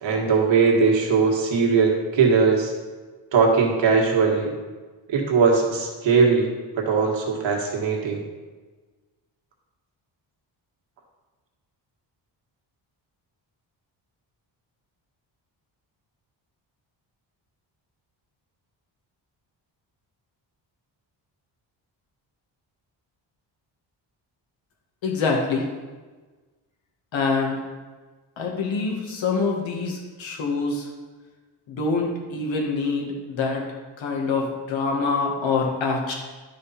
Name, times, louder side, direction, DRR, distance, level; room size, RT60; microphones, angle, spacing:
voice 1, 0.0-2.7 3.3-4.5 5.1-8.2, right 5 dB, 80° right, 0 dB, 1.7 m, -20 dB
voice 2, 25.0-25.6 27.1-27.6 28.4-30.9 31.7-33.6 34.0-36.1, left 4 dB, 85° left, 0 dB, 1.9 m, -25 dB
11.5 x 5.0 x 4.3 m, 1.3 s
wide cardioid pair, 155°, 45 cm